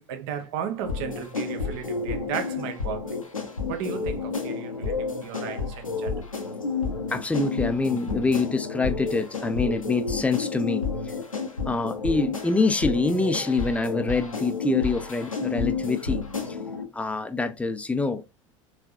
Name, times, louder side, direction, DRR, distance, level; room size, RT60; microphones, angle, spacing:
voice 1, 0.0-3.2 3.7-6.3, right 8 dB, 55° right, 1.0 m, -34 dB
sound 1, 0.8-16.8, left 5 dB, 85° left, 0.7 m, -31 dB
voice 2, 7.1-11.1 11.7-16.6 16.9-18.2, left 3 dB, 10° left, 0.5 m, -26 dB
4.5 x 3.2 x 2.5 m
figure-of-eight pair, 75°, 17 cm